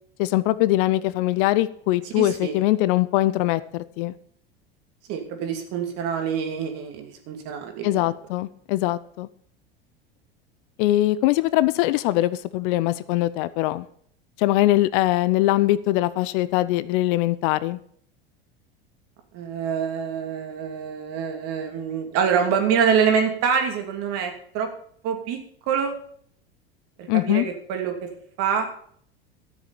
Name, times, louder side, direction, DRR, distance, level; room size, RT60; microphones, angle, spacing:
voice 1, 0.2-4.1 7.8-9.3 10.8-13.9 14.4-17.8 27.1-27.5, left 16 dB, 60° left, 16 dB, 0.7 m, -22 dB
voice 2, 2.1-2.6 5.1-8.1 19.3-24.7 25.0-25.4 25.7-25.9 27.0-27.9 28.4-28.7, right 7 dB, 55° right, 4 dB, 2.8 m, -25 dB
13.0 x 7.0 x 7.0 m, 0.63 s
hypercardioid pair, 80°, 30 cm